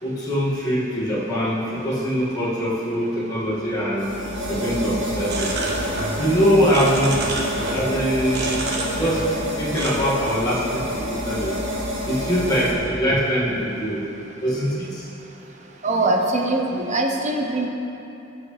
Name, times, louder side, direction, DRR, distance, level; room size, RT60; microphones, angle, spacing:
voice 1, 0.0-4.1 4.5-5.6 6.2-7.2 7.7-8.6 9.0-11.5 12.0-14.0 14.4-15.0, equal, 20° left, -10 dB, 2.1 m, -23 dB
sound 1, 4.0-12.7, equal, 75° right, 1.9 m, -28 dB
sound 2, 5.2-6.2 6.4-7.9 8.3-9.4 9.7-9.9, right 2 dB, 60° right, 1.3 m, -29 dB
voice 2, 15.8-17.7, right 2 dB, 40° right, 1 dB, 0.9 m, -22 dB
15.5 x 5.9 x 3.4 m, 2.9 s
head